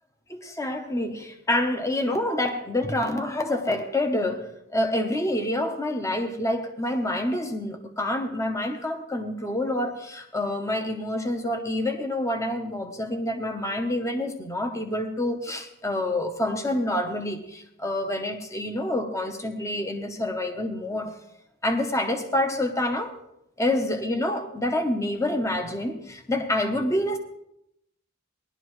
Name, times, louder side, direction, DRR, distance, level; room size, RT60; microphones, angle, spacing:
voice 1, 0.3-21.1 21.6-23.1 23.6-27.2, left 1 dB, 15° left, 6 dB, 0.9 m, -27 dB
19.0 x 11.5 x 3.2 m, 0.79 s
head